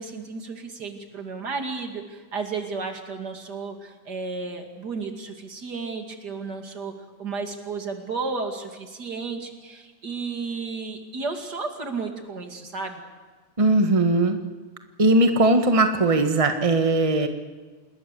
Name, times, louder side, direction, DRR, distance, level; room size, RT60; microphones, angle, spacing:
voice 1, 0.0-6.9 7.2-13.0, right 4 dB, 35° right, 4 dB, 2.6 m, -33 dB
voice 2, 13.6-14.4 15.0-17.3, right 2 dB, 55° right, 5 dB, 0.3 m, -19 dB
28.0 x 20.5 x 7.0 m, 1.4 s
omnidirectional pair, 3.4 m